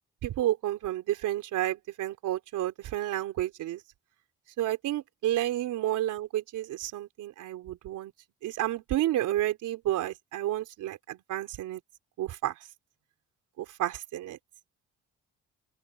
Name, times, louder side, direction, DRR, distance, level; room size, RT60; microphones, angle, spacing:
voice 1, 0.2-3.8 4.6-8.1 8.4-11.8 12.2-12.6 13.6-14.4, right 13 dB, 85° right, 3.7 m, -31 dB
open air
cardioid pair, 90°, 30 cm